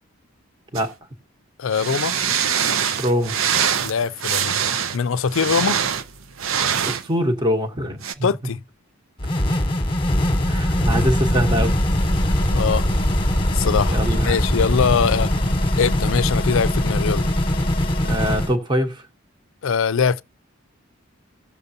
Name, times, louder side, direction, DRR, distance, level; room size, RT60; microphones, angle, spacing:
sound 1, 0.7-0.9 1.7-7.1 8.0-8.1, right 8 dB, 70° right, 0.6 m, -23 dB
voice 1, 1.6-2.2 3.8-4.5 4.9-5.8 8.2-8.6 12.1-12.9 13.5-15.3 15.8-17.3 19.6-20.2, left 6 dB, 65° left, 0.4 m, -22 dB
voice 2, 3.0-3.3 6.8-8.0 10.5-11.7 13.9-14.4 18.0-19.0, equal, 20° right, 1.0 m, -23 dB
sound 2, 9.2-18.6, left 1 dB, 25° left, 1.1 m, -21 dB
16.5 x 6.7 x 2.7 m
head